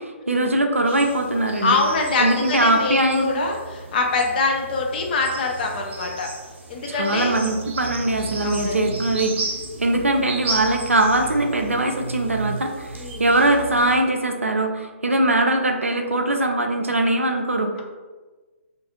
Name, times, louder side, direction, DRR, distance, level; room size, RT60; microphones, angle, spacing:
voice 1, 0.0-1.8 2.2-3.3 6.9-9.3 9.8-17.7, right 1 dB, 90° right, 4 dB, 0.4 m, -21 dB
sound 1, 0.8-14.0, right 3 dB, 60° right, 0.8 m, -34 dB
voice 2, 1.6-6.3 6.7-7.3 8.4-8.8 12.9-13.3, left 3 dB, 45° left, 2 dB, 0.5 m, -24 dB
2.5 x 2.3 x 2.9 m, 1.3 s
figure-of-eight pair, 130°, 7 cm